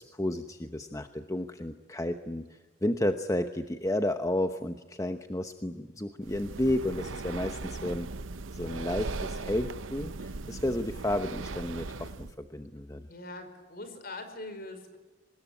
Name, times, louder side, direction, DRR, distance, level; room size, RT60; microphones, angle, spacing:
voice 1, 0.0-8.1 8.5-13.1, left 1 dB, 15° left, 7 dB, 1.0 m, -32 dB
Breathing, 6.2-12.3, right 3 dB, 75° right, 0.9 m, -38 dB
voice 2, 13.1-15.0, left 2 dB, 50° left, 9 dB, 5.1 m, -42 dB
25.5 x 20.5 x 9.8 m, 1.2 s
head